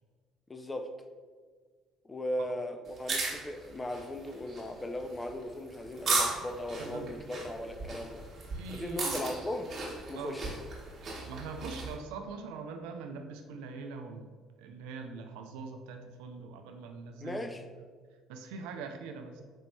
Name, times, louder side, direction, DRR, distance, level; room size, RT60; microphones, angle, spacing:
voice 1, 0.5-0.9 2.0-8.3 8.7-9.7 10.1-10.6 17.2-17.6, left 1 dB, 20° left, 6 dB, 0.4 m, -37 dB
sound 1, 2.9-11.9, right 3 dB, 45° right, 1.0 m, -36 dB
voice 2, 6.8-7.1 8.5-9.2 10.1-10.4 11.3-14.3 14.6-17.5 18.3-19.4, right 4 dB, 75° right, 5 dB, 0.4 m, -42 dB
5.1 x 2.9 x 2.2 m, 1.5 s
hypercardioid pair, 60°, 0 cm